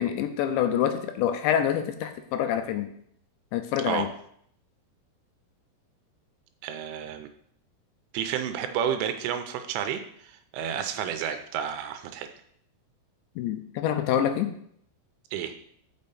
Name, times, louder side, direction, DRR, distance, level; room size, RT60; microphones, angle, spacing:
voice 1, 0.0-2.9 3.5-4.1 13.4-14.5, left 9 dB, 80° left, 7 dB, 2.8 m, -26 dB
voice 2, 6.6-7.3 8.1-12.3 15.3-15.5, right 9 dB, 85° right, 7 dB, 3.2 m, -31 dB
6.5 x 6.2 x 6.9 m, 0.67 s
omnidirectional pair, 5.6 m